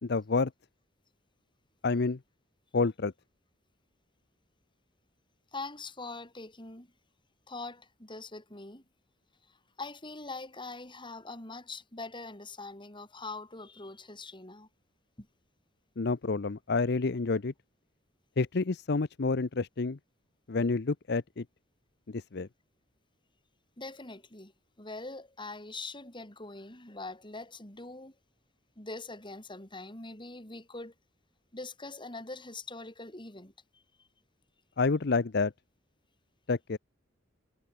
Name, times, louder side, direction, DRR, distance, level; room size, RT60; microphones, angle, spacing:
voice 1, 0.0-0.5 1.8-2.2 2.7-3.1 16.0-17.5 18.4-20.0 20.5-21.4 22.1-22.5 34.8-35.5 36.5-36.8, left 4 dB, 60° left, 0.7 m, -29 dB
voice 2, 5.5-6.9 7.5-8.8 9.5-14.7 15.2-15.3 23.8-24.5 24.8-28.2 28.8-30.9 31.5-34.1, left 3 dB, 25° left, 5.3 m, -43 dB
head